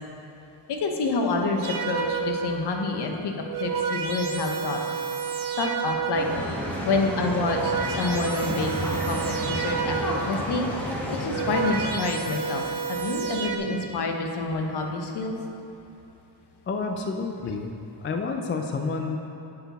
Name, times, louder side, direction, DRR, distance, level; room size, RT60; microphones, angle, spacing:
voice 1, 0.7-3.3 3.6-4.8 5.6-6.3 6.6-8.7 9.0-10.7 11.1-15.4, left 3 dB, 60° left, 3 dB, 0.9 m, -28 dB
sound 1, 1.6-2.5 3.3-6.4 7.1-10.3 11.1-13.6, right 6 dB, 45° right, 0.8 m, -30 dB
sound 2, 6.1-11.9, equal, 5° left, 1.0 m, -31 dB
voice 2, 16.7-17.7 18.0-19.2, left 4 dB, 30° left, 4 dB, 0.3 m, -29 dB
8.1 x 6.8 x 4.1 m, 2.8 s
wide cardioid pair, 150°, 46 cm